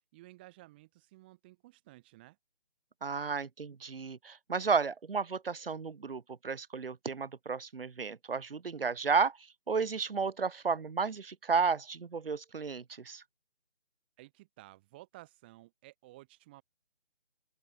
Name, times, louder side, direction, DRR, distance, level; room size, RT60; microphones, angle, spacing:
voice 1, 0.1-2.4 14.2-16.6, right 19 dB, 10° right, 2.1 m, -55 dB
voice 2, 3.0-13.2, right 5 dB, 55° right, 1.0 m, -33 dB
open air
figure-of-eight pair, 170°, 34 cm